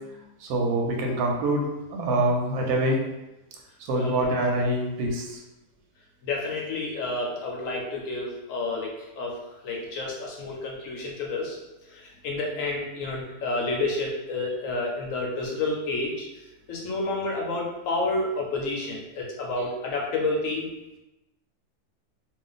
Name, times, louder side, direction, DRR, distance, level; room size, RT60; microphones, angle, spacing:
voice 1, 0.4-1.6 1.9-3.0 3.9-5.3, right 1 dB, 70° right, 1 dB, 1.0 m, -25 dB
voice 2, 3.9-4.3 6.2-8.9 9.2-9.4 9.6-11.6 11.9-16.3 16.7-20.7, left 2 dB, 65° left, -1 dB, 0.9 m, -30 dB
2.5 x 2.4 x 3.8 m, 0.99 s
omnidirectional pair, 1.7 m